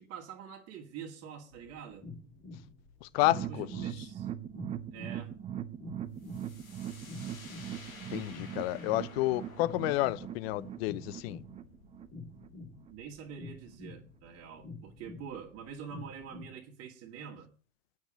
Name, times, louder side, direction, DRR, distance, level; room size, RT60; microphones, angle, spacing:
voice 1, 0.0-2.1 3.5-4.3 4.9-5.4 12.9-17.5, right 7 dB, 35° right, 2.2 m, -46 dB
sound 1, 1.5-16.5, left 3 dB, 20° left, 2.9 m, -48 dB
voice 2, 3.0-4.1 8.1-11.4, left 17 dB, 50° left, 0.7 m, -31 dB
sound 2, 3.2-12.5 12.8-12.9 13.3-13.4, right 10 dB, 15° right, 0.7 m, -41 dB
sound 3, 6.2-13.8, left 4 dB, 85° left, 4.3 m, -54 dB
9.3 x 7.2 x 8.9 m
hypercardioid pair, 110°, 40 cm